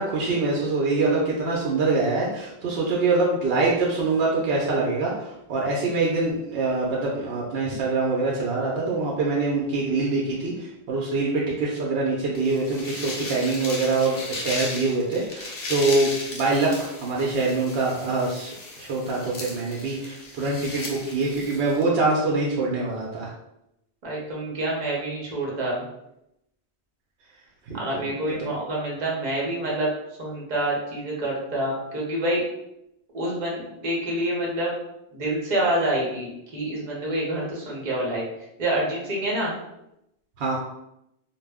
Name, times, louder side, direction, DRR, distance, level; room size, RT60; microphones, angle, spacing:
voice 1, 0.0-23.3 27.7-28.0 28.4-28.5 40.4-40.6, right 3 dB, 75° right, -4 dB, 0.8 m, -24 dB
sound 1, 12.3-21.8, left 2 dB, 70° left, 0.8 m, -36 dB
voice 2, 24.0-25.8 27.7-29.9 30.2-32.4 33.1-34.7 35.1-38.3 38.6-39.5, right 1 dB, 45° right, -3 dB, 0.8 m, -27 dB
2.1 x 2.0 x 3.4 m, 0.83 s
omnidirectional pair, 1.0 m